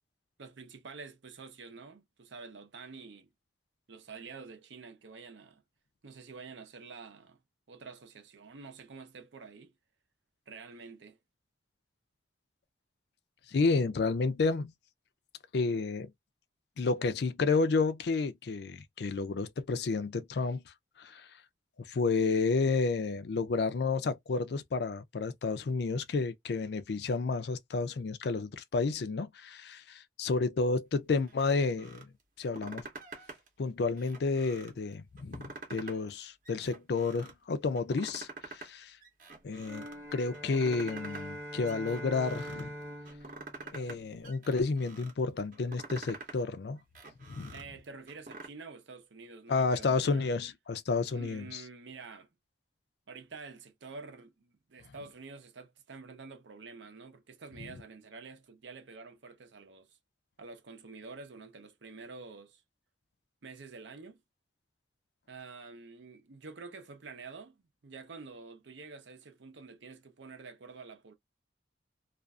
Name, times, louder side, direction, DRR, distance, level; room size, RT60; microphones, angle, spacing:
voice 1, 0.4-3.3 3.9-5.6 6.0-7.4 7.7-9.7 10.5-11.2 47.5-50.3 51.1-52.3 53.1-60.0 60.4-62.6 63.4-64.2 65.3-67.6 67.8-71.1, right 4 dB, 80° right, 0.7 m, -48 dB
voice 2, 13.5-14.7 15.5-16.1 16.8-20.6 21.0-21.3 21.8-32.1 32.4-32.8 33.6-39.0 39.4-39.8 40.1-42.7 43.7-46.8 47.3-47.5 49.5-51.6, left 4 dB, 60° left, 0.4 m, -31 dB
sound 1, 31.3-32.0 32.4-33.5 33.9-34.8 35.2-36.1 36.4-37.3 37.8-38.7 39.0-40.0 40.3-41.3 41.6-42.6 43.0-44.0 44.2-45.1 45.5-46.4 46.8-48.5, right 3 dB, 45° right, 0.8 m, -47 dB
sound 2, 39.6-44.3, equal, 15° right, 0.7 m, -43 dB
2.5 x 2.4 x 2.2 m
head